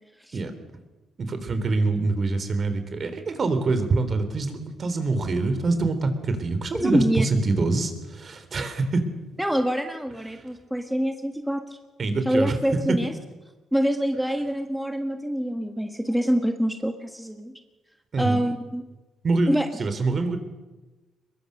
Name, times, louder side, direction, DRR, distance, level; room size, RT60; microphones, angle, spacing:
voice 1, 1.2-9.0 10.3-10.4 12.0-12.6 18.1-18.4 19.2-19.5 19.8-20.4, right 3 dB, 45° right, 9 dB, 3.6 m, -25 dB
voice 2, 6.7-7.3 9.4-11.8 12.2-13.1 13.7-17.5 18.2-18.8 19.5-19.7, equal, ahead, 5 dB, 1.6 m, -25 dB
22.5 x 22.0 x 6.6 m, 1.2 s
cardioid pair, 90°, 0 cm